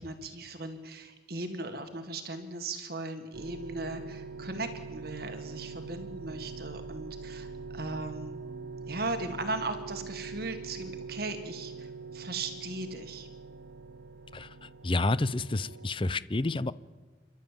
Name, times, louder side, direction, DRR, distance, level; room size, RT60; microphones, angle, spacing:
voice 1, 0.0-8.4 8.9-13.3, right 2 dB, 55° right, 7 dB, 1.8 m, -38 dB
sound 1, 3.3-15.9, right 4 dB, 85° right, 1.1 m, -43 dB
voice 2, 14.3-16.7, left 2 dB, 30° left, 17 dB, 0.6 m, -30 dB
28.5 x 12.0 x 9.1 m, 1.3 s
head